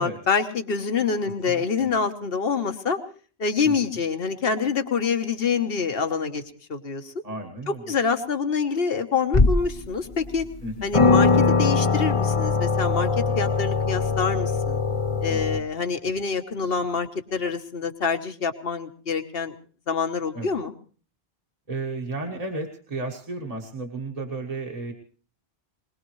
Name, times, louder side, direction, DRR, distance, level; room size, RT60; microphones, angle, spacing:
voice 1, 0.0-3.0 3.4-6.4 6.7-7.2 7.7-10.5 10.8-14.8 15.2-19.5 19.9-20.7, left 5 dB, 70° left, 8 dB, 1.5 m, -26 dB
voice 2, 1.4-1.9 3.6-4.0 7.2-7.8 10.6-10.9 15.3-15.6 20.3-20.5 21.7-24.9, right 2 dB, 35° right, 0 dB, 1.6 m, -33 dB
sound 1, 9.3-9.8 10.4-10.5 10.9-15.6, left 4 dB, 35° left, 0.9 m, -21 dB
21.0 x 21.0 x 3.2 m, 0.40 s
omnidirectional pair, 1.0 m